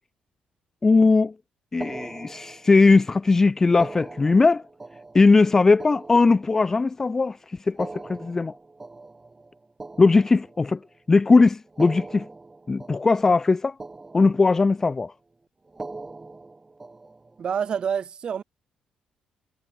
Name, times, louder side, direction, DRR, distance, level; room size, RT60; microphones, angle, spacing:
voice 1, 0.8-1.3 1.7-4.6 5.1-8.5 10.0-10.8 11.1-12.3 12.7-13.8 14.1-15.1, left 3 dB, 20° left, 0.4 m, -19 dB
sound 1, 1.8-3.0 3.7-7.0 7.7-11.0 11.7-13.5 13.8-14.9 15.7-17.5, right 3 dB, 15° right, 6.9 m, -41 dB
voice 2, 17.4-18.4, right 7 dB, 40° right, 1.2 m, -27 dB
cardioid pair, 150°, 2 cm